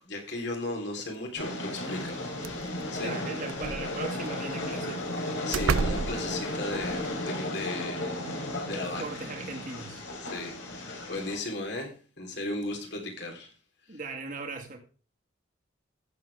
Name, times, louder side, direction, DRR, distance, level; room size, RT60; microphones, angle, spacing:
voice 1, 0.0-2.3 2.9-3.1 5.4-8.3 8.7-9.0 10.3-13.5, left 2 dB, 55° left, 3.6 m, -36 dB
Train, 1.4-11.4, left 1 dB, 75° left, 4.0 m, -34 dB
sound 1, 2.1-2.2 2.4-2.9 3.4-4.3 5.0-5.1 5.5-7.1, right 5 dB, 90° right, 0.5 m, -31 dB
voice 2, 3.0-5.0 9.0-10.0 13.9-14.8, right 3 dB, 40° right, 2.1 m, -38 dB
16.0 x 7.7 x 3.5 m
head